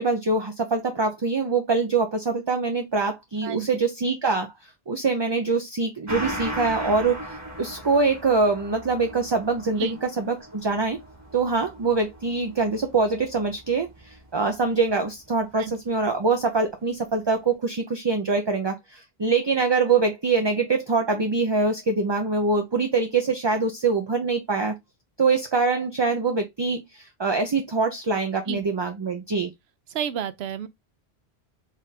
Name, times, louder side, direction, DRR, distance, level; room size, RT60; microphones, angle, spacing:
voice 1, 0.0-4.5 4.9-11.0 11.3-24.7 25.2-29.5, right 4 dB, 35° right, 0.5 m, -24 dB
Gong, 6.1-15.0 15.4-15.5, right 1 dB, 15° right, 1.1 m, -38 dB
voice 2, 29.9-30.7, right 9 dB, 75° right, 0.9 m, -31 dB
4.2 x 2.5 x 3.9 m
omnidirectional pair, 1.1 m